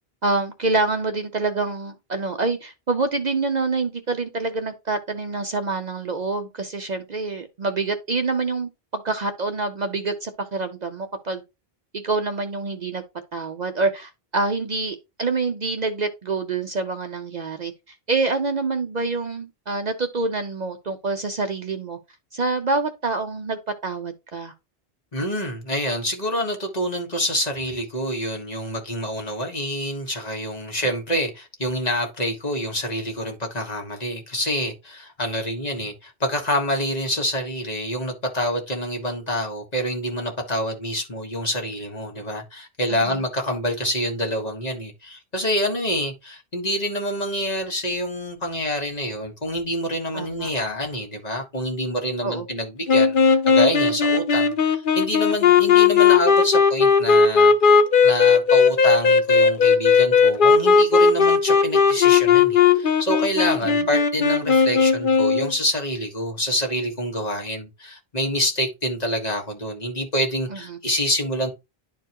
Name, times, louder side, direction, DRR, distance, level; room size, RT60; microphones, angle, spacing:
voice 1, 0.2-11.4 11.9-13.0 13.3-17.7 18.1-22.0 22.3-24.5 42.9-43.2 50.1-50.5 52.2-52.5 70.5-70.8, right 3 dB, 50° right, 0.7 m, -26 dB
voice 2, 25.1-57.5 58.0-71.5, equal, 40° left, 1.7 m, -27 dB
sound 1, 52.9-65.5, left 5 dB, 55° left, 0.9 m, -17 dB
11.0 x 4.5 x 2.9 m
omnidirectional pair, 1.1 m